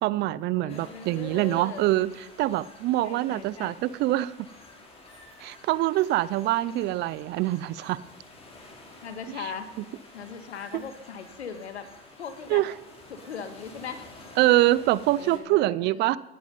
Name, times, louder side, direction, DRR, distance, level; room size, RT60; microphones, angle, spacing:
voice 1, 0.0-2.1 2.4-4.3 5.4-8.0 9.4-9.5 10.7-10.8 12.5-12.7 14.4-16.2, right 16 dB, 35° right, 20 dB, 0.5 m, -24 dB
voice 2, 0.6-1.9 3.0-3.8 9.0-9.7 10.1-11.9 12.2-12.6 13.1-14.1 15.2-16.1, left 6 dB, 90° left, 10 dB, 1.7 m, -39 dB
sound 1, 0.7-15.4, left 2 dB, 20° left, 3.6 m, -50 dB
17.5 x 10.5 x 5.4 m, 0.99 s
hypercardioid pair, 110°, 32 cm